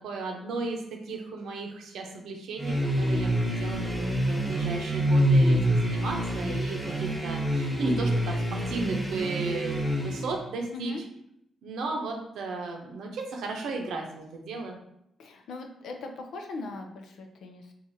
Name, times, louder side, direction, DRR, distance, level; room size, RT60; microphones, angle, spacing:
voice 1, 0.0-10.9 11.6-14.8, right 3 dB, 85° right, 2 dB, 0.7 m, -35 dB
sound 1, 2.6-10.4, equal, 5° right, 1.0 m, -26 dB
voice 2, 10.7-11.0 14.5-14.7 15.2-17.7, left 3 dB, 70° left, 3 dB, 0.5 m, -40 dB
4.7 x 2.4 x 2.7 m, 0.78 s
cardioid pair, 125°, 0 cm